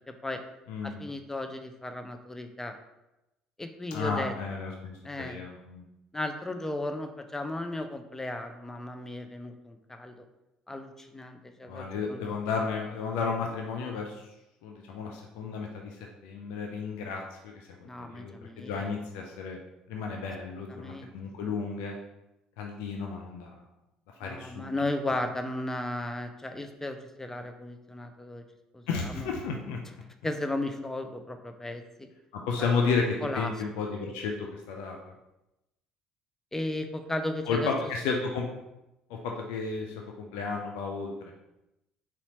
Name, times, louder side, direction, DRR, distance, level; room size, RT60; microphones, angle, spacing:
voice 1, 0.1-0.4 0.8-2.8 3.6-4.3 5.0-5.4 6.1-10.2 10.7-12.4 17.8-18.7 20.5-21.1 24.2-28.4 28.7-29.3 30.2-32.1 32.6-32.7 33.2-33.5 36.5-37.7 38.1-38.2, left 1 dB, 15° left, 7 dB, 0.6 m, -35 dB
voice 2, 0.7-1.0 3.9-5.8 11.7-14.3 14.6-15.9 16.2-19.6 19.9-22.0 22.6-23.5 24.2-24.7 28.9-29.8 32.3-33.0 33.3-35.1 37.5-38.4 39.1-41.3, left 5 dB, 70° left, 1 dB, 0.5 m, -33 dB
4.2 x 4.1 x 2.9 m, 0.93 s
figure-of-eight pair, 55°, 3 cm